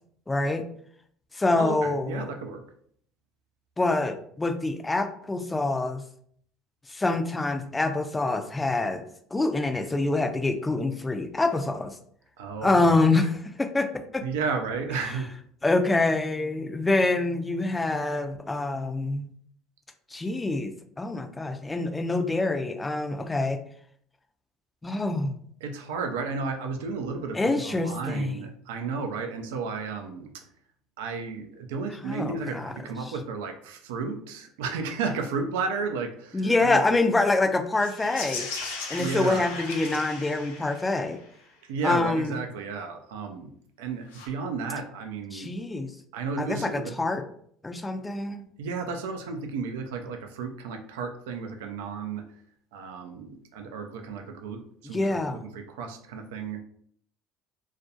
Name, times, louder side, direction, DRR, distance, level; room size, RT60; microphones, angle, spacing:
voice 1, 0.3-0.6 1.3-2.3 3.8-6.0 6.9-9.0 9.3-12.0 12.6-14.3 15.6-19.2 20.1-23.6 24.8-25.4 27.3-28.4 32.0-32.7 33.0-33.1 36.3-38.5 38.9-41.2 41.8-42.4 45.3-45.9 46.4-47.2 47.6-48.4 54.8-55.4, left 2 dB, 15° left, 6 dB, 0.4 m, -26 dB
voice 2, 1.6-2.6 12.4-13.0 14.2-15.3 25.6-30.3 31.0-36.8 39.0-39.5 41.7-43.5 43.8-45.5 46.1-47.0 48.6-52.2 52.7-56.6, right 4 dB, 80° right, 5 dB, 0.4 m, -33 dB
sound 1, 37.7-41.2 44.1-44.3, left 4 dB, 80° left, 0.5 m, -37 dB
2.4 x 2.1 x 2.7 m, 0.63 s
hypercardioid pair, 70°, 0 cm